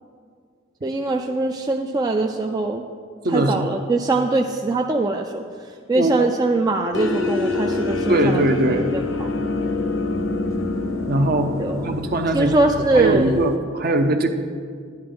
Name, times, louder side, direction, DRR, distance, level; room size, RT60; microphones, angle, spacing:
voice 1, 0.8-2.8 3.3-8.4 8.7-9.0 11.6-11.9 12.3-13.4, right 2 dB, 20° right, 2 dB, 0.4 m, -22 dB
voice 2, 3.2-3.7 5.9-6.3 8.1-8.9 11.1-11.6 11.8-14.3, right 2 dB, 45° right, 6 dB, 0.7 m, -21 dB
sound 1, 6.9-13.5, left 3 dB, 65° left, 0.8 m, -26 dB
11.0 x 10.5 x 3.8 m, 2.1 s
head